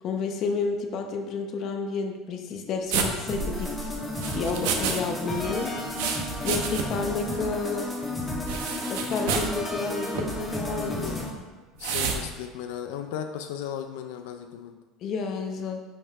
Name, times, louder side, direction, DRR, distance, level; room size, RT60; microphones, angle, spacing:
voice 1, 0.0-3.8 4.2-5.7 6.4-7.9 8.9-11.0 15.0-15.8, left 4 dB, 45° left, 4 dB, 0.8 m, -30 dB
sound 1, 2.9-5.0 5.3-7.1 7.3-7.4 8.5-9.6 10.1-10.3 11.8-12.2, right 6 dB, 85° right, 0.9 m, -30 dB
sound 2, 3.3-11.3, left 1 dB, 5° left, 1.3 m, -32 dB
voice 2, 10.7-11.3 11.8-14.8, left 9 dB, 90° left, 6 dB, 0.4 m, -36 dB
5.5 x 5.4 x 4.7 m, 1.3 s
cardioid pair, 145°, 0 cm